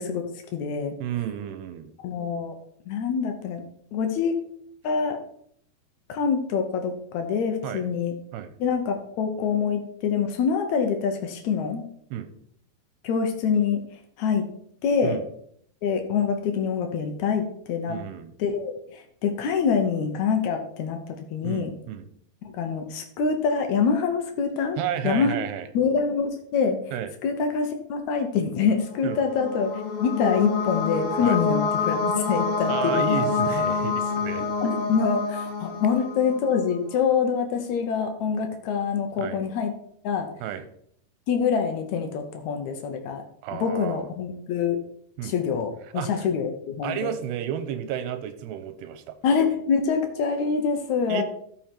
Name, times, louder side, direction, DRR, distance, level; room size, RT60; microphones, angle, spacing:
voice 1, 0.0-1.0 2.0-2.5 2.9-3.6 3.9-4.4 4.8-5.2 6.1-8.1 8.6-11.8 13.0-13.8 14.2-14.5 14.8-15.2 15.8-18.0 18.4-21.7 22.5-24.8 25.0-25.4 25.7-26.8 27.2-33.3 34.6-39.7 40.0-40.3 41.3-43.2 43.5-44.8 45.2-47.1 49.2-51.2, left 6 dB, 80° left, 5 dB, 1.6 m, -25 dB
voice 2, 1.0-1.9 7.6-7.8 8.3-8.5 12.1-12.3 15.0-15.2 17.9-18.3 21.4-22.1 24.8-25.7 26.9-27.1 29.0-29.2 31.2-31.4 32.7-34.5 39.2-39.4 40.4-40.6 43.4-44.1 45.2-45.3 45.9-46.1 46.8-49.1 51.1-51.2, right 10 dB, 85° right, 11 dB, 2.9 m, -32 dB
sound 1, 29.0-36.7, left 4 dB, 55° left, 1.7 m, -27 dB
13.5 x 5.4 x 4.5 m, 0.67 s
omnidirectional pair, 4.7 m